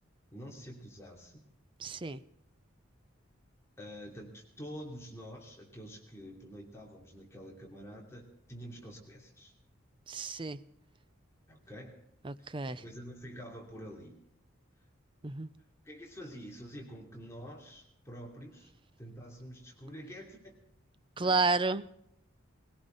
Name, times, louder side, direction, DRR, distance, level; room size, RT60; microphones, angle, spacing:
voice 1, 0.3-1.4 3.8-9.5 11.5-12.0 12.4-14.2 15.8-18.7 19.0-20.6 21.2-21.4, equal, 15° left, -1 dB, 2.9 m, -47 dB
voice 2, 1.8-2.2 10.1-10.6 12.2-12.8 15.2-15.5 21.2-21.8, right 3 dB, 25° right, 14 dB, 0.5 m, -31 dB
20.5 x 17.0 x 3.9 m, 0.74 s
head